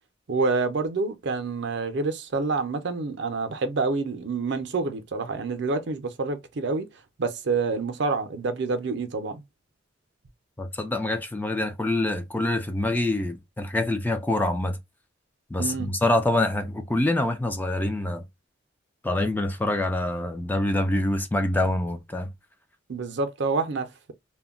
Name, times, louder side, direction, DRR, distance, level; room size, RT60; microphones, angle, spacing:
voice 1, 0.3-6.9 7.2-9.4 15.6-15.9 22.9-24.1, right 3 dB, 65° right, 0.5 m, -27 dB
voice 2, 10.6-14.8 15.5-18.2 19.0-22.3, left 1 dB, 10° left, 0.3 m, -25 dB
2.2 x 2.1 x 3.5 m
head